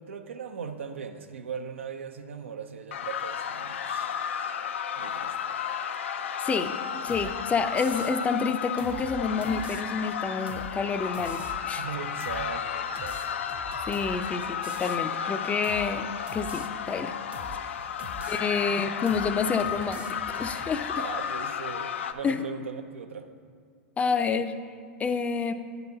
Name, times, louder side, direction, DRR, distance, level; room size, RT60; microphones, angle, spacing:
voice 1, 0.0-4.2 5.0-5.3 11.8-13.4 17.4-17.5 17.8-18.3 18.7-18.8 21.0-23.3, right 6 dB, 85° right, 7 dB, 0.6 m, -39 dB
sound 1, 2.9-22.1, left 8 dB, 80° left, 0.4 m, -33 dB
voice 2, 6.4-6.8 7.0-11.8 13.9-17.1 18.3-21.1 22.2-22.4 24.0-24.5 25.0-25.5, left 5 dB, 20° left, 9 dB, 0.4 m, -28 dB
sound 2, 7.1-7.3 7.8-8.2 8.8-9.8 10.5-10.7 11.1-11.6 12.2-12.5 13.0-14.2 14.6-15.0 15.6-15.9 16.3-16.7 17.3-17.6 18.0-18.4 19.1-19.3 19.6-20.8, right 2 dB, 20° right, 0.6 m, -44 dB
9.6 x 4.0 x 5.7 m, 2.1 s
hypercardioid pair, 105°, 7 cm